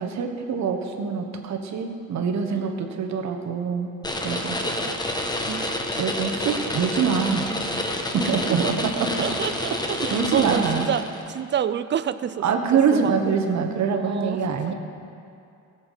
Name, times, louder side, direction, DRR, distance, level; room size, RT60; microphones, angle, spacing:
voice 1, 0.0-3.9 4.2-4.8 6.0-7.5 8.1-9.1 10.0-10.9 12.4-14.7, right 6 dB, 65° right, 4 dB, 1.3 m, -24 dB
sound 1, 4.0-11.3, left 1 dB, 15° left, 1.2 m, -28 dB
voice 2, 9.2-11.0 11.3-12.4 12.9-13.7 14.0-14.7, right 9 dB, 40° right, 13 dB, 0.5 m, -29 dB
17.0 x 7.5 x 4.9 m, 2.5 s
cardioid pair, 90°, 30 cm